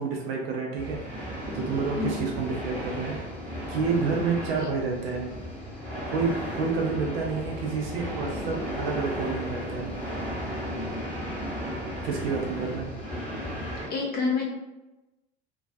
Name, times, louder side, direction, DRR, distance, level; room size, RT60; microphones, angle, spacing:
voice 1, 0.0-3.2 3.7-5.3 6.1-9.9 12.0-12.9, right 4 dB, 65° right, 0 dB, 0.6 m, -29 dB
sound 1, 0.8-13.9, equal, 5° left, 1.0 m, -34 dB
voice 2, 13.9-14.5, left 4 dB, 30° left, -1 dB, 0.7 m, -28 dB
2.3 x 2.3 x 2.5 m, 1.0 s
hypercardioid pair, 80°, 32 cm